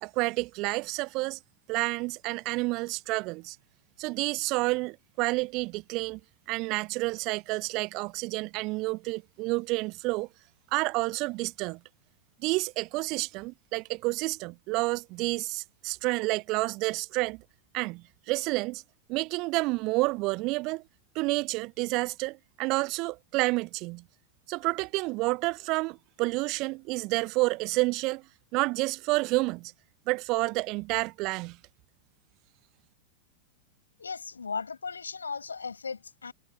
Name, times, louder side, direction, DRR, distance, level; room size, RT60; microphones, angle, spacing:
voice 1, 0.0-1.4 1.7-3.6 4.0-6.2 6.5-10.3 10.7-11.8 12.4-17.4 17.7-18.8 19.1-20.8 21.1-24.0 24.5-28.2 28.5-29.7 30.1-31.6, right 24 dB, 40° right, 0.7 m, -29 dB
voice 2, 34.0-36.3, left 5 dB, 75° left, 6.5 m, -36 dB
figure-of-eight pair, 90°, 0 cm